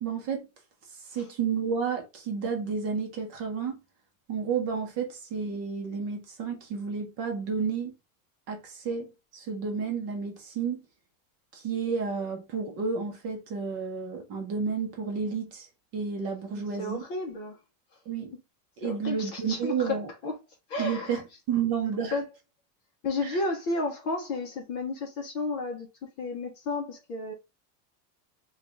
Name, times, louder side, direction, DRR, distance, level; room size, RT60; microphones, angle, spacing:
voice 1, 0.0-0.5 1.1-3.8 4.3-7.9 8.5-10.8 11.5-15.7 15.9-17.0 18.1-18.3 18.8-20.1 20.8-22.2, right 6 dB, 30° right, 0.8 m, -31 dB
voice 2, 16.5-17.6 18.8-20.0 20.2-20.3 20.7-21.2 22.1-22.2 23.0-25.9 26.2-27.3, left 3 dB, 30° left, 0.6 m, -32 dB
3.3 x 2.4 x 3.7 m
supercardioid pair, 180°, 47 cm